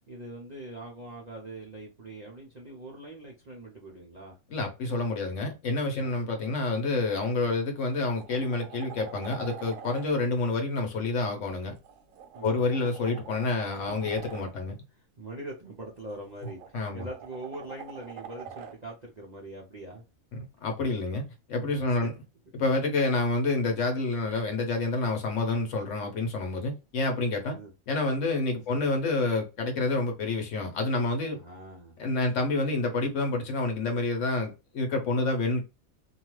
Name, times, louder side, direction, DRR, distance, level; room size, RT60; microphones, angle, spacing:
voice 1, 0.1-4.4 6.0-6.2 10.3-10.4 12.3-12.7 13.8-14.0 15.2-20.0 21.6-22.1 27.5-27.7 28.7-28.8 31.3-32.0 32.4-32.5, right 1 dB, 45° right, 0.5 m, -43 dB
voice 2, 4.5-11.7 12.4-14.8 16.7-17.1 20.3-22.1 22.5-27.6 27.9-31.4 32.0-35.6, left 3 dB, 60° left, 1.0 m, -28 dB
sound 1, 7.2-7.4 7.8-10.1 11.7-14.5 16.0-18.8 21.1-21.2, right 8 dB, 70° right, 0.9 m, -45 dB
2.8 x 2.3 x 3.0 m
omnidirectional pair, 1.5 m